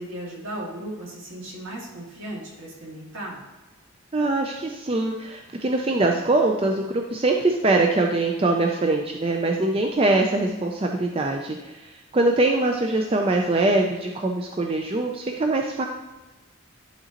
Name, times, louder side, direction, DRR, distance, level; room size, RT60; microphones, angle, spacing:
voice 1, 0.0-3.4, right 1 dB, 70° right, -4 dB, 2.3 m, -36 dB
voice 2, 4.1-15.8, right 2 dB, 25° right, 2 dB, 0.4 m, -23 dB
11.5 x 3.9 x 2.9 m, 1.2 s
head